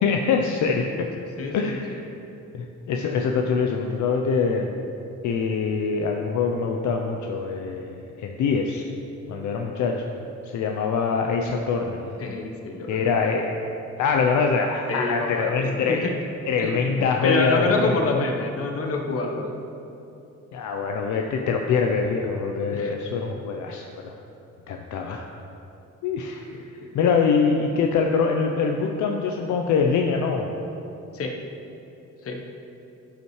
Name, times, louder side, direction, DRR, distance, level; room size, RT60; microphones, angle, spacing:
voice 1, 0.0-0.8 1.5-1.9 2.5-4.7 5.2-8.9 9.3-10.0 10.4-12.1 12.9-13.6 14.0-16.1 16.5-18.2 20.5-24.1 24.7-25.3 26.0-26.4 26.9-30.5, left 5 dB, 70° left, 2 dB, 0.6 m, -24 dB
voice 2, 1.4-2.0 12.2-13.1 14.9-16.1 16.6-19.6 22.7-23.0 25.1-25.2 26.5-26.9 31.1-31.4 32.2-32.4, left 2 dB, 50° left, 2 dB, 1.1 m, -28 dB
11.5 x 5.7 x 3.2 m, 2.8 s
cardioid pair, 90°, 30 cm